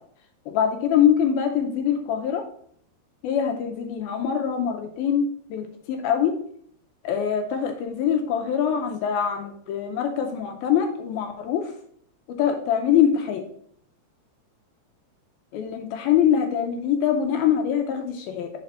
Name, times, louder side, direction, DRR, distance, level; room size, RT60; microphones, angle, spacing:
voice 1, 0.5-2.4 3.2-5.2 5.5-6.4 7.0-11.7 12.4-13.5 15.5-18.5, left 8 dB, 80° left, 4 dB, 2.3 m, -23 dB
5.4 x 5.0 x 5.4 m, 0.63 s
omnidirectional pair, 4.7 m